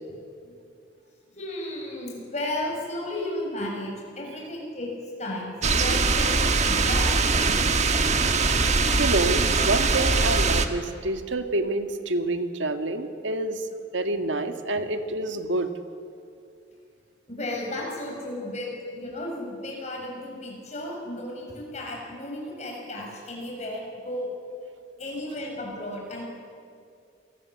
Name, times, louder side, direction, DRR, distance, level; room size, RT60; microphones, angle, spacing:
voice 1, 1.3-6.3 6.7-7.1 10.3-10.4 17.3-24.3 25.0-26.2, left 1 dB, 35° left, -1 dB, 7.2 m, -34 dB
sound 1, 5.6-10.7, right 4 dB, 35° right, 1.4 m, -22 dB
voice 2, 7.5-7.9 9.0-13.6 13.9-15.7, right 2 dB, 80° right, 7 dB, 1.9 m, -28 dB
27.5 x 19.5 x 8.4 m, 2.4 s
head